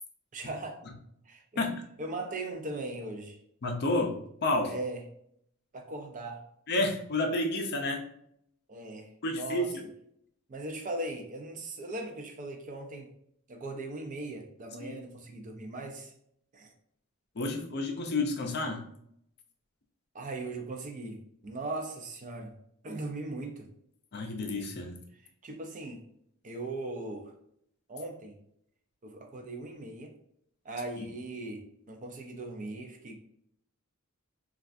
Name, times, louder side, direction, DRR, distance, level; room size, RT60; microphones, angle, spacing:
voice 1, 0.3-0.8 1.3-1.6 2.0-3.4 4.7-5.0 5.7-6.4 8.7-9.7 10.5-13.1 13.5-16.1 16.5-16.7 20.1-22.5 22.8-23.7 25.4-26.0 26.4-27.3 27.9-28.4 29.0-30.1 30.6-33.2, right 2 dB, 35° right, 3 dB, 0.4 m, -39 dB
voice 2, 3.6-4.2 4.4-4.7 6.7-8.0 9.2-9.8 14.8-15.0 17.4-18.9 24.1-25.0, left 2 dB, 45° left, 3 dB, 0.5 m, -30 dB
3.2 x 2.3 x 2.5 m, 0.71 s
head